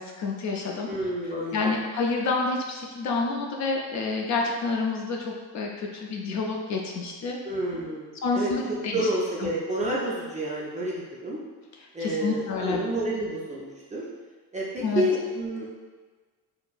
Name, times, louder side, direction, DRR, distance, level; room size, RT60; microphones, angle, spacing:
voice 1, 0.0-0.9 1.5-7.4 8.2-9.0 9.4-9.5 12.0-12.8 14.8-15.0, left 4 dB, 45° left, 0 dB, 0.4 m, -28 dB
voice 2, 0.9-1.7 7.4-8.5 8.9-11.4 11.9-14.0 14.5-15.6, right 1 dB, 20° right, -5 dB, 0.4 m, -29 dB
4.1 x 2.0 x 2.3 m, 1.4 s
cardioid pair, 125°, 41 cm